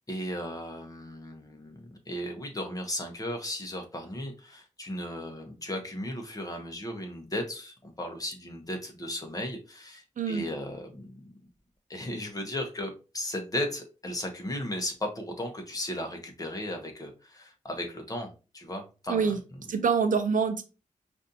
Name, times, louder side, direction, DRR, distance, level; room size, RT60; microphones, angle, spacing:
voice 1, 0.1-11.5 11.9-19.4 19.7-19.8, left 1 dB, 25° left, 3 dB, 0.9 m, -36 dB
voice 2, 19.1-19.4 19.7-20.6, right 5 dB, 80° right, 9 dB, 0.6 m, -25 dB
5.1 x 2.6 x 2.7 m, 0.31 s
wide cardioid pair, 150°, 13 cm